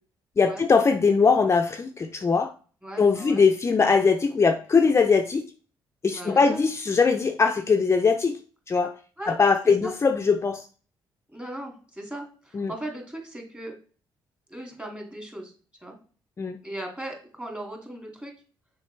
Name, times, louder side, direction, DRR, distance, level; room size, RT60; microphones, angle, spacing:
voice 1, 0.4-2.5 3.0-5.4 6.0-8.4 8.7-8.9 9.3-10.7 12.5-12.7 16.4-16.6, left 5 dB, 30° left, 6 dB, 0.5 m, -21 dB
voice 2, 2.8-3.4 6.1-6.6 9.2-9.4 9.6-9.9 11.3-13.8 14.5-15.5 15.8-16.0 16.6-18.3, right 1 dB, 15° right, 1 dB, 2.3 m, -38 dB
6.4 x 4.7 x 3.3 m, 0.39 s
cardioid pair, 80°, 9 cm